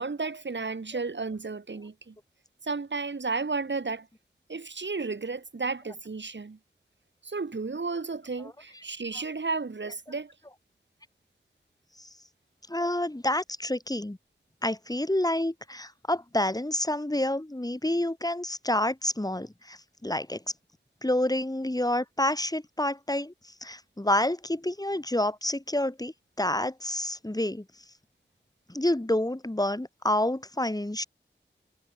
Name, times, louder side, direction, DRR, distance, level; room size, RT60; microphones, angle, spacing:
voice 1, 0.0-2.1 2.6-4.1 4.5-6.6 7.2-10.3, right 4 dB, 75° right, 5.0 m, -33 dB
voice 2, 12.7-14.2 14.6-20.4 21.0-23.3 23.6-27.6 28.7-31.0, left 1 dB, 20° left, 3.2 m, -28 dB
cardioid pair, 40°, 19 cm